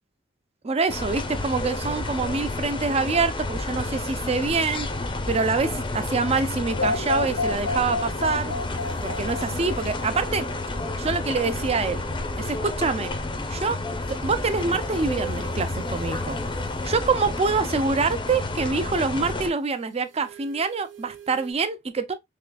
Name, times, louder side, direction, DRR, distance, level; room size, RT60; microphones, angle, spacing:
voice 1, 0.6-4.9 5.3-8.5 9.0-10.5 11.0-12.0 12.4-13.1 13.5-13.8 14.1-16.4 16.8-22.1, right 4 dB, 30° right, 0.5 m, -25 dB
sound 1, 0.9-19.5, left 2 dB, 25° left, 0.6 m, -30 dB
sound 2, 6.8-10.8, left 3 dB, 90° left, 0.6 m, -30 dB
sound 3, 8.5-12.7 13.4-17.1 19.6-21.5, right 10 dB, 70° right, 1.2 m, -48 dB
3.6 x 3.3 x 2.2 m
head